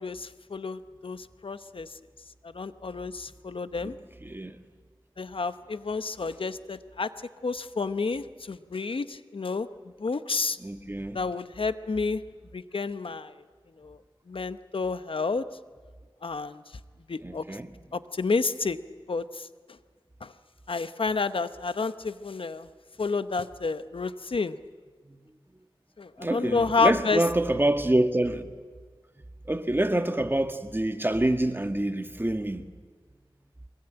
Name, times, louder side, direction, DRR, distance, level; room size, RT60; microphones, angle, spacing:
voice 1, 0.0-2.0 2.5-4.0 5.2-7.1 7.4-9.7 10.0-10.6 11.1-12.2 12.5-13.3 13.8-14.0 14.3-15.4 16.2-16.6 17.1-17.4 17.9-18.8 19.1-19.5 20.2-20.3 20.7-22.7 23.0-24.6 26.0-27.2, left 4 dB, 75° left, 0.9 m, -30 dB
voice 2, 4.2-4.6 10.6-11.2 17.2-17.7 25.1-25.2 26.2-28.5 29.5-32.7, right 1 dB, 25° right, 1.6 m, -26 dB
24.0 x 21.5 x 9.0 m
wide cardioid pair, 55°, 9 cm